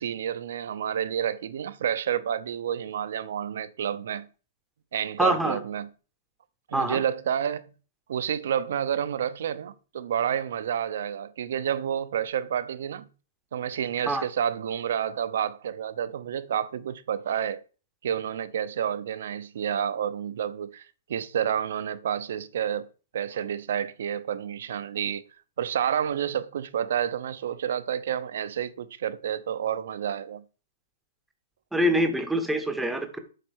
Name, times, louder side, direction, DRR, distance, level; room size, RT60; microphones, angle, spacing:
voice 1, 0.0-4.3 4.9-5.9 6.7-7.7 8.1-13.1 13.5-17.6 18.0-22.9 23.1-25.2 25.6-30.4, right 9 dB, 60° right, 0.7 m, -29 dB
voice 2, 5.2-5.6 6.7-7.0 14.1-14.2 31.7-33.2, right 1 dB, 5° right, 0.8 m, -25 dB
7.9 x 4.1 x 6.4 m
hypercardioid pair, 170°, 0 cm